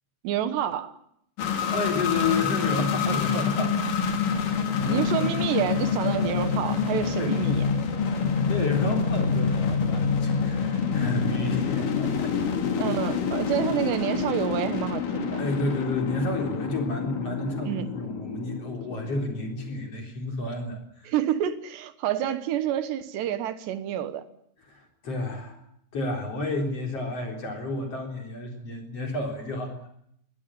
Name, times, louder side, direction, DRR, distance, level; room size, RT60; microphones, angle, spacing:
voice 1, 0.2-1.0 4.8-7.7 12.8-15.4 17.7-17.9 21.1-24.3, right 11 dB, 80° right, 3.5 m, -28 dB
sound 1, 1.4-19.9, left 6 dB, 55° left, 3.9 m, -27 dB
voice 2, 1.7-3.9 4.8-5.3 7.2-7.4 8.1-12.3 12.6-12.7 15.4-21.1 24.7-25.6 25.9-29.8, left 2 dB, 35° left, 4.6 m, -31 dB
22.0 x 17.0 x 9.9 m
omnidirectional pair, 4.9 m